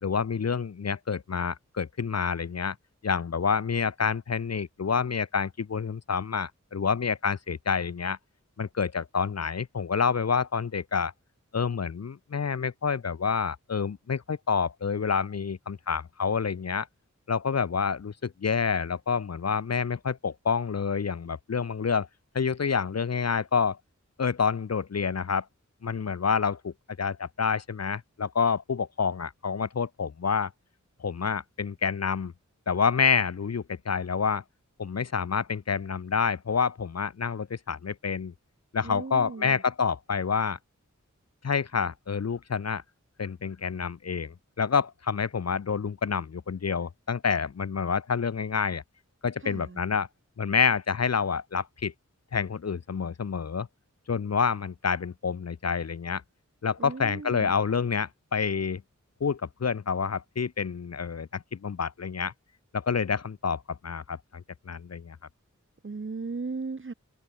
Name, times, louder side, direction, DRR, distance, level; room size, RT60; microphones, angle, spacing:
voice 1, 0.0-2.8 3.0-8.2 8.6-11.1 11.5-16.9 17.3-22.1 22.3-23.8 24.2-25.5 25.8-30.5 31.0-32.3 32.7-34.4 34.8-38.3 38.7-40.6 41.4-42.8 43.2-48.8 49.2-50.1 50.4-51.9 52.3-53.7 54.1-56.2 56.6-58.8 59.2-62.3 62.7-65.2, left 6 dB, 55° left, 0.6 m, -28 dB
voice 2, 38.8-39.6 49.4-49.8 56.8-57.6 65.8-66.9, right 4 dB, 40° right, 0.9 m, -36 dB
wide cardioid pair, 50°, 31 cm